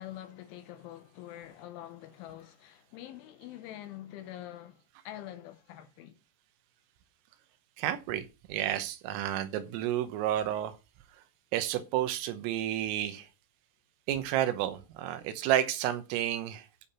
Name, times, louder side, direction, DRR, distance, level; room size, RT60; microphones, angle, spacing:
voice 1, 0.0-6.2, left 12 dB, 80° left, 3.1 m, -45 dB
voice 2, 7.8-10.8 11.5-13.3 14.1-16.7, right 12 dB, 85° right, 3.5 m, -31 dB
14.0 x 5.7 x 4.3 m
omnidirectional pair, 6.0 m